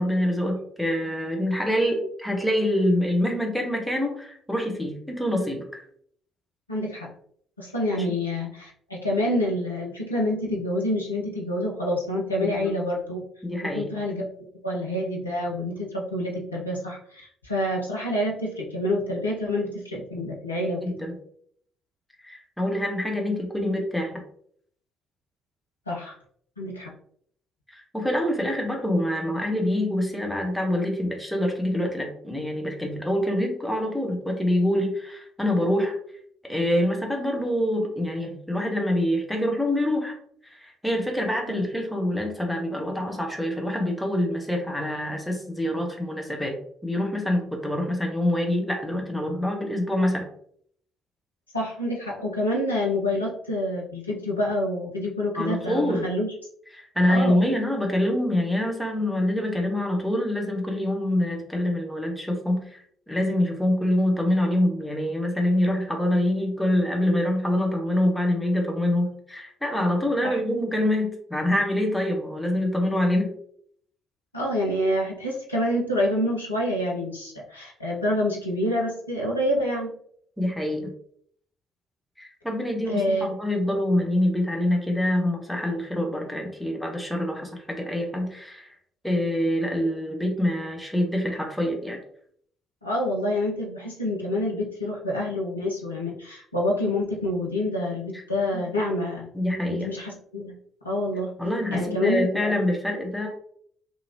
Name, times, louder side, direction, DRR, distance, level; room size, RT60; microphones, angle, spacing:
voice 1, 0.0-5.8 7.9-8.2 12.4-12.7 13.4-13.9 20.8-21.1 22.2-24.1 27.7-35.9 36.4-40.1 40.4-46.6 46.8-50.3 55.3-56.1 56.7-73.3 80.4-80.9 82.2-88.7 89.0-92.0 98.1-98.2 98.5-98.6 99.3-99.9 101.4-103.3, left 1 dB, 5° left, 1 dB, 0.8 m, -25 dB
voice 2, 6.7-7.1 7.6-13.2 13.6-20.8 25.9-26.2 26.6-26.9 41.5-41.6 51.5-56.3 57.1-57.5 70.2-70.4 74.3-79.9 82.8-83.3 92.8-99.3 99.7-100.5 100.8-101.3 101.7-102.5, left 1 dB, 85° left, -3 dB, 0.4 m, -27 dB
2.8 x 2.7 x 2.8 m, 0.64 s
figure-of-eight pair, 45°, 0 cm